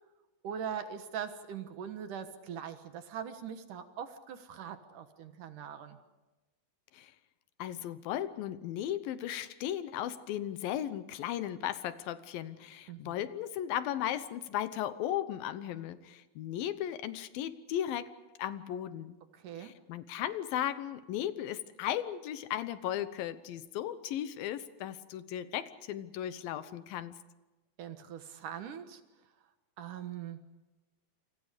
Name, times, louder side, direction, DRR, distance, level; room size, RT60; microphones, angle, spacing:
voice 1, 0.4-6.0 12.9-13.3 19.3-19.7 27.8-29.0 29.8-30.4, right 8 dB, 65° right, 8 dB, 2.7 m, -41 dB
voice 2, 7.6-18.1 18.4-19.2 19.6-27.2, left 11 dB, 80° left, 13 dB, 2.7 m, -36 dB
28.5 x 26.5 x 5.1 m, 1.1 s
omnidirectional pair, 4.2 m